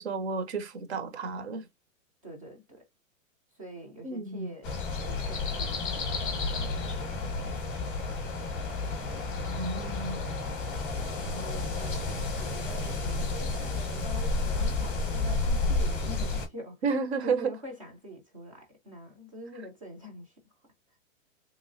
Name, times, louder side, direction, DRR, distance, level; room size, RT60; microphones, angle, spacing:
voice 1, 0.0-1.7 4.0-4.5 9.5-10.2 16.8-17.5, right 4 dB, 55° right, 0.8 m, -31 dB
voice 2, 2.2-2.9 3.5-4.7 5.0-8.2 11.2-16.8 17.2-20.4, equal, 25° right, 0.6 m, -45 dB
sound 1, 4.6-16.5, left 3 dB, 15° left, 0.8 m, -31 dB
3.2 x 3.1 x 2.5 m
hypercardioid pair, 175°, 41 cm